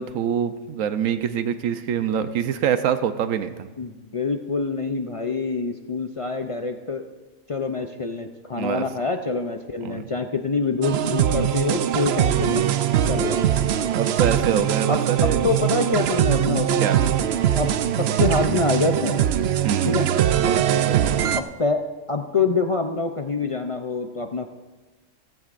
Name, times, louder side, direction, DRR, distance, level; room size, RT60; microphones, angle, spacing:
voice 1, 0.0-3.7 8.6-8.9 9.8-10.1 11.7-11.8 12.5-12.6 13.9-15.4 16.8-17.0 19.6-20.1 20.4-21.2, right 8 dB, 85° right, 11 dB, 1.1 m, -25 dB
voice 2, 3.8-7.0 7.5-12.7 13.1-13.5 14.9-15.0 15.4-16.9 17.6-19.3 19.8-20.1 21.3-21.8 22.1-24.5, left 4 dB, 55° left, 5 dB, 0.3 m, -26 dB
sound 1, 10.8-21.4, right 10 dB, 65° right, 0.7 m, -21 dB
17.0 x 15.0 x 2.5 m, 1.2 s
omnidirectional pair, 1.3 m